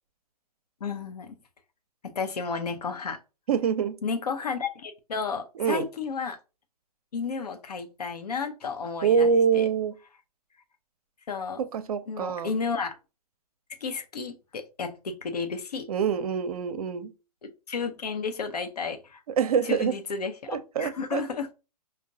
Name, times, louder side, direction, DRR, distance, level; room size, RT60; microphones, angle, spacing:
voice 1, 0.8-1.3 2.0-3.2 4.0-6.4 7.1-9.7 11.3-11.6 12.1-13.0 13.8-15.9 17.4-19.2 19.6-21.5, left 5 dB, 75° left, 0.8 m, -32 dB
voice 2, 3.5-4.0 5.6-5.9 9.0-9.9 11.6-12.5 15.9-17.1 19.4-19.9 20.5-21.2, right 6 dB, 65° right, 0.6 m, -25 dB
5.3 x 2.1 x 2.7 m
hypercardioid pair, 135°, 20 cm